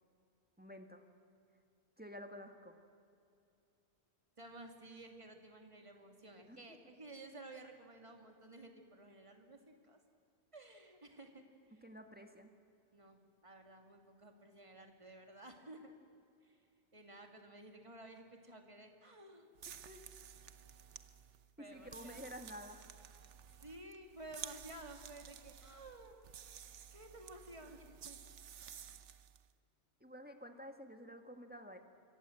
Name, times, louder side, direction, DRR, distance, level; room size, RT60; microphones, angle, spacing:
voice 1, 0.6-1.1 2.0-2.8 6.5-6.6 11.7-12.5 19.8-20.0 21.6-22.8 30.0-31.8, equal, 10° right, 5 dB, 1.8 m, -51 dB
voice 2, 4.4-10.0 10.5-11.4 12.9-15.9 16.4-16.6 16.9-19.5 21.6-22.2 23.6-26.2 26.9-28.2, right 2 dB, 25° right, 3 dB, 2.4 m, -54 dB
sound 1, 19.5-29.4, right 8 dB, 80° right, 1.2 m, -53 dB
26.0 x 25.0 x 7.8 m, 2.6 s
omnidirectional pair, 1.2 m